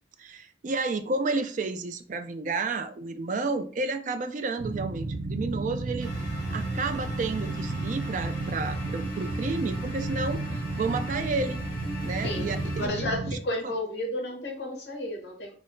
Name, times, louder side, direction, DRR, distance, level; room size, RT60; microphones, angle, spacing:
voice 1, 0.2-6.1 6.5-11.6 12.0-13.4, right 3 dB, 40° right, 0.3 m, -31 dB
sound 1, 4.6-13.4, right 2 dB, 85° right, 0.6 m, -32 dB
sound 2, 6.0-12.9, left 1 dB, 20° left, 1.1 m, -40 dB
voice 2, 12.8-15.5, left 1 dB, 60° left, 1.0 m, -32 dB
5.6 x 2.0 x 2.6 m
head